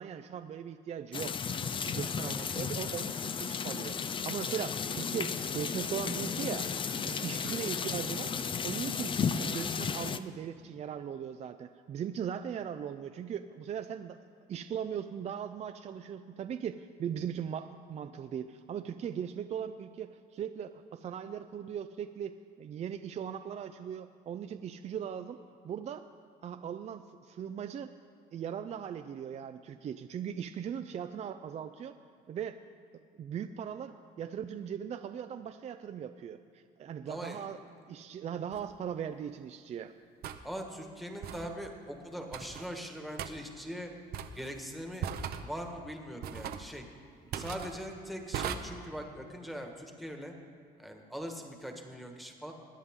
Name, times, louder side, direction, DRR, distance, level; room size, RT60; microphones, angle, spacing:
voice 1, 0.0-1.4 1.8-6.7 7.0-8.3 8.6-14.2 14.5-26.1 26.4-27.9 28.3-32.0 32.3-32.6 33.2-37.6 37.9-40.0 47.4-47.5, right 8 dB, 40° right, 8 dB, 0.4 m, -39 dB
sound 1, 1.1-10.2, left 6 dB, 30° left, 0.5 m, -34 dB
voice 2, 37.1-37.4 40.4-43.9 44.3-45.1 45.4-46.8 47.3-50.3 50.8-52.5, equal, ahead, 2 dB, 1.6 m, -41 dB
sound 2, 38.5-38.7 40.2-40.4 41.2-41.5 42.3-42.7 43.2-43.3 44.1-44.5 45.0-45.4 46.2-46.7 47.3-47.7 48.3-48.6, right 9 dB, 65° right, 0.8 m, -37 dB
21.5 x 9.6 x 3.7 m, 2.2 s
cardioid pair, 110°, 17 cm